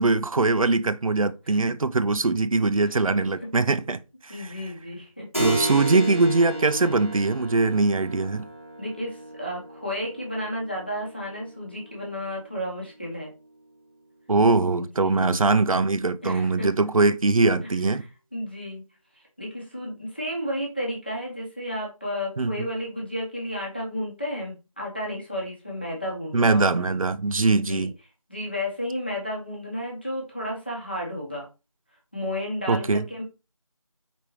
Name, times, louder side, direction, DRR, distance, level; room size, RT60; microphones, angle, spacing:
voice 1, 0.0-4.5 5.4-8.5 14.3-18.0 22.4-22.7 26.3-27.9 32.7-33.0, right 3 dB, 80° right, 0.5 m, -22 dB
voice 2, 2.9-3.5 4.3-5.3 8.8-13.3 14.8-15.3 16.2-16.7 17.6-17.7 18.0-18.8 19.4-27.0 27.6-27.9 28.3-31.5 32.1-33.2, equal, 20° left, 0.9 m, -32 dB
Keyboard (musical), 5.3-13.5, right 1 dB, 25° right, 1.0 m, -34 dB
4.9 x 3.5 x 2.9 m
figure-of-eight pair, 175°, 18 cm